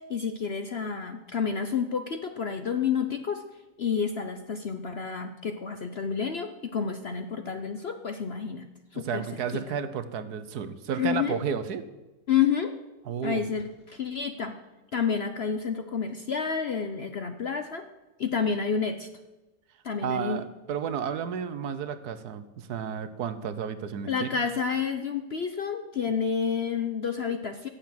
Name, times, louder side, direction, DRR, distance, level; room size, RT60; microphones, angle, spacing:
voice 1, 0.1-3.4 3.8-8.6 8.9-9.3 9.5-9.6 11.0-11.4 12.3-12.7 13.2-14.6 14.9-17.9 18.2-19.1 19.8-20.4 24.1-27.7, left 6 dB, 50° left, 7 dB, 0.8 m, -29 dB
voice 2, 8.9-11.8 13.1-13.5 20.0-24.3, right 7 dB, 70° right, 12 dB, 1.4 m, -32 dB
16.5 x 7.2 x 7.6 m, 1.1 s
omnidirectional pair, 1.8 m